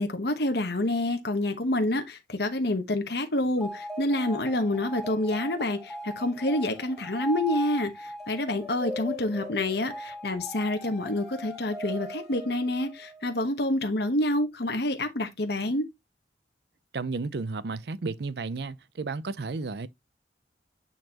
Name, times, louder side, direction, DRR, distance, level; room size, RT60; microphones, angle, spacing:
voice 1, 0.0-15.9, left 1 dB, 60° left, 1.1 m, -28 dB
sound 1, 3.6-13.3, equal, ahead, 2.6 m, -39 dB
voice 2, 16.9-19.9, right 3 dB, 65° right, 0.5 m, -33 dB
9.1 x 4.1 x 2.9 m
head